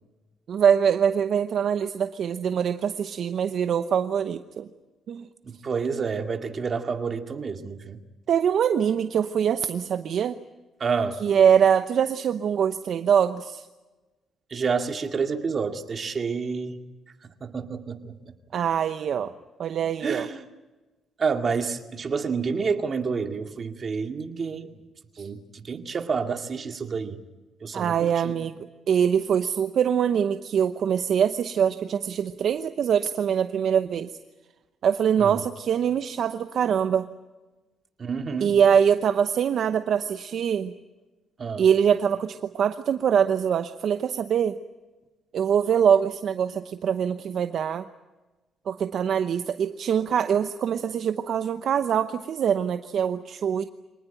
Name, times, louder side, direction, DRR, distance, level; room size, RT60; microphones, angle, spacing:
voice 1, 0.5-4.7 5.1-5.3 8.3-10.4 11.2-13.7 18.5-19.3 19.6-20.3 25.1-25.3 27.7-34.1 34.8-37.1 38.4-40.7 41.6-44.6 45.3-47.9 48.7-53.6, right 8 dB, 65° right, 9 dB, 0.9 m, -23 dB
voice 2, 5.4-8.0 10.8-11.2 14.5-16.8 17.4-18.1 20.0-20.5 21.2-24.7 25.2-27.2 27.6-28.3 35.2-35.4 38.0-38.5 41.4-41.6, right 5 dB, 45° right, 5 dB, 2.2 m, -29 dB
24.5 x 19.0 x 9.1 m, 1.2 s
cardioid pair, 90°, 0 cm